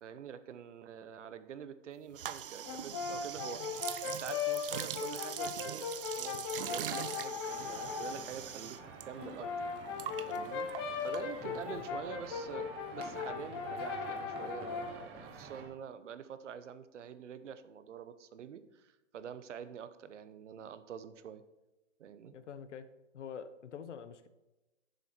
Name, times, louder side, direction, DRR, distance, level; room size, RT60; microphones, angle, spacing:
voice 1, 0.0-5.9 6.1-8.8 9.0-9.5 10.3-10.7 11.0-12.7 12.9-21.4 22.0-22.3, right 8 dB, 70° right, 12 dB, 0.9 m, -46 dB
sound 1, 2.1-9.1 9.3-11.7, right 10 dB, 50° right, 0.5 m, -42 dB
Brass instrument, 2.6-8.2 9.2-15.0, left 6 dB, 20° left, 0.7 m, -38 dB
sound 2, 7.4-15.6, right 4 dB, 15° right, 1.1 m, -50 dB
voice 2, 11.4-12.0 22.3-22.9 23.1-24.3, left 7 dB, 70° left, 12 dB, 0.9 m, -46 dB
10.5 x 7.0 x 4.5 m, 1.0 s
hypercardioid pair, 165°, 37 cm